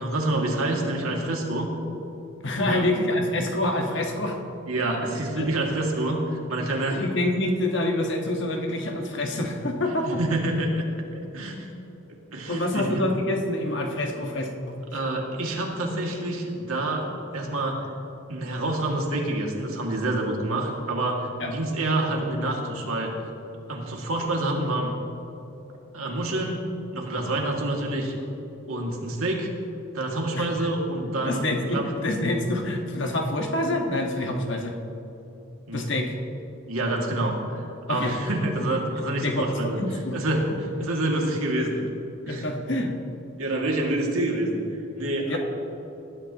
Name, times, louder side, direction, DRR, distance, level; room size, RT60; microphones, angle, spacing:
voice 1, 0.0-1.7 2.6-2.9 4.7-7.0 10.1-11.7 12.3-12.9 14.9-17.9 18.3-23.2 23.7-24.9 25.9-26.6 26.9-28.1 28.7-29.5 29.9-31.8 35.7-35.9 36.7-39.8 40.1-40.5 40.8-41.8 42.3-42.5 43.4-44.6 44.9-45.4, right 1 dB, 85° right, 0 dB, 2.1 m, -27 dB
voice 2, 2.4-4.4 5.4-5.5 6.9-10.2 12.5-14.8 21.4-21.5 30.3-30.5 31.2-34.8 35.7-36.1 37.9-38.1 38.6-38.7 39.2-40.2 42.3-43.0 45.3-45.4, left 1 dB, 55° left, 2 dB, 1.4 m, -26 dB
19.0 x 12.0 x 2.9 m, 2.9 s
head